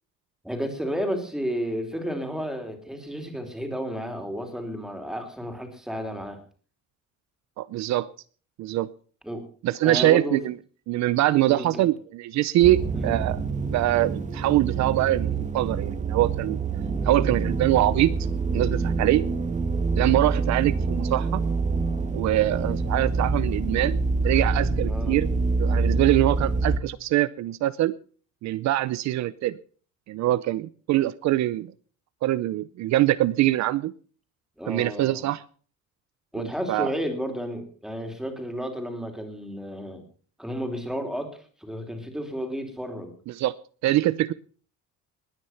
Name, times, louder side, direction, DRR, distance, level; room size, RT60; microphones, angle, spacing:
voice 1, 0.4-6.4 9.2-9.4 9.8-10.4 11.5-11.9 12.9-13.2 16.9-17.5 24.8-25.2 34.6-35.3 36.3-40.0 40.4-43.1, equal, ahead, 6 dB, 3.1 m, -32 dB
voice 2, 7.6-8.1 8.6-8.9 9.6-10.5 10.9-16.6 17.0-18.1 18.5-19.3 20.0-21.4 22.1-24.0 24.2-25.3 25.6-27.9 28.4-29.6 30.1-31.7 32.2-33.9 34.7-35.4 36.4-36.9 43.3-43.5 43.8-44.3, right 15 dB, 65° right, 16 dB, 0.7 m, -23 dB
sound 1, 12.6-26.8, right 4 dB, 25° right, 1.5 m, -26 dB
20.5 x 9.7 x 5.8 m, 0.43 s
cardioid pair, 165°, 30 cm